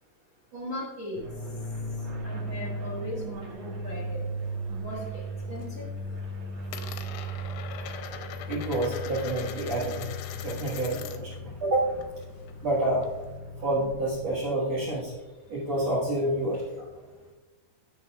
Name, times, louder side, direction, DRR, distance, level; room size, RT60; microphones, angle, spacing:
voice 1, 0.5-1.2 2.2-4.2 4.7-5.2 5.5-5.8 16.5-16.6, equal, 85° right, -6 dB, 1.1 m, -38 dB
sound 1, 1.1-14.3, equal, 40° right, 1.6 m, -37 dB
Coin (dropping), 3.9-5.0 5.3-5.8 6.1-11.4 11.7-13.4, left 8 dB, 80° left, 2.6 m, -42 dB
voice 2, 8.5-10.1 10.4-11.9 12.6-13.0 13.6-15.1 15.5-16.6, right 1 dB, 60° right, -5 dB, 1.8 m, -28 dB
14.0 x 6.8 x 2.4 m, 1.2 s
omnidirectional pair, 5.2 m